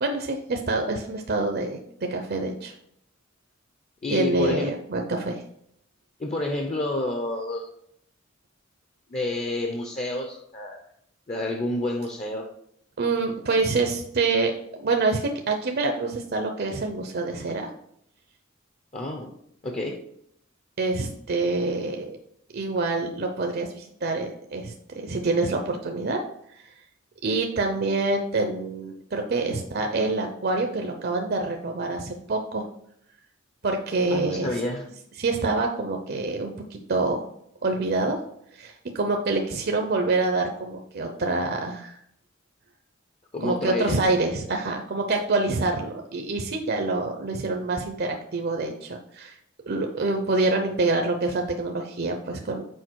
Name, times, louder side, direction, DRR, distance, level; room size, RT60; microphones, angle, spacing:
voice 1, 0.0-2.7 4.1-5.4 13.0-17.7 20.8-22.2 22.5-26.2 26.6-26.7 27.2-32.6 33.6-34.5 35.2-37.3 37.6-38.2 38.5-42.0 43.4-49.4 49.7-52.7, right 3 dB, 50° right, 3 dB, 0.6 m, -26 dB
voice 2, 4.0-4.7 6.2-7.7 9.1-10.8 11.3-12.5 18.9-19.3 19.6-20.0 34.1-34.9 43.3-44.0, left 2 dB, 35° left, 3 dB, 0.7 m, -29 dB
6.4 x 4.7 x 4.6 m, 0.72 s
head